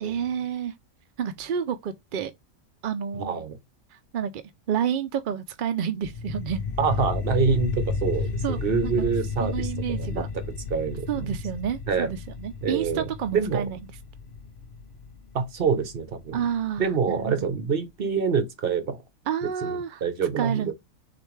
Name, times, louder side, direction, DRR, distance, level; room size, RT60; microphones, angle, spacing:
voice 1, 0.0-0.7 1.2-2.3 2.8-3.4 4.1-6.6 8.4-9.1 9.4-10.3 11.1-13.8 16.3-17.4 19.3-20.0 20.4-20.7, right 8 dB, 65° right, 0.5 m, -29 dB
voice 2, 3.1-3.6 6.8-10.4 10.7-11.4 11.9-12.1 12.6-13.7 15.3-16.4 16.8-19.0 19.6-20.7, right 5 dB, 50° right, 1.0 m, -26 dB
sound 1, 6.0-17.0, left 4 dB, 60° left, 0.6 m, -33 dB
6.4 x 2.5 x 3.1 m
omnidirectional pair, 1.4 m